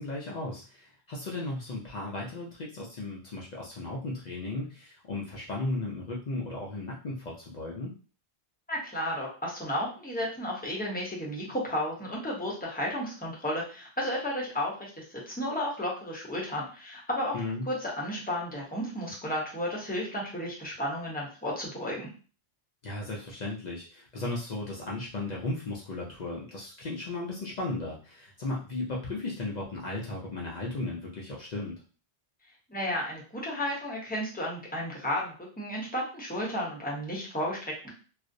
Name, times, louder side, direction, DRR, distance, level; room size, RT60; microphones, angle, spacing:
voice 1, 0.0-7.9 17.3-17.7 22.8-31.8, left 2 dB, 55° left, -3 dB, 0.5 m, -35 dB
voice 2, 8.7-17.3 17.7-22.1 32.7-37.9, equal, 10° left, -4 dB, 0.6 m, -33 dB
2.4 x 2.0 x 2.5 m, 0.37 s
omnidirectional pair, 1.0 m